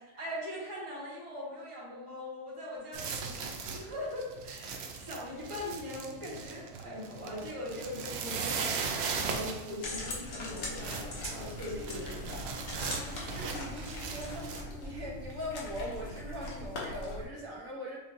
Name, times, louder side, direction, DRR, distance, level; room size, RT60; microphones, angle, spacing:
voice 1, 0.2-4.7 5.0-12.7, left 1 dB, 25° right, -6 dB, 1.3 m, -41 dB
sound 1, 2.9-14.6, right 5 dB, 65° right, 0.7 m, -38 dB
sound 2, 9.8-17.2, left 2 dB, 75° left, 1.2 m, -41 dB
voice 2, 13.1-18.0, equal, 80° right, -5 dB, 1.5 m, -41 dB
6.5 x 2.8 x 2.6 m, 1.1 s
omnidirectional pair, 1.4 m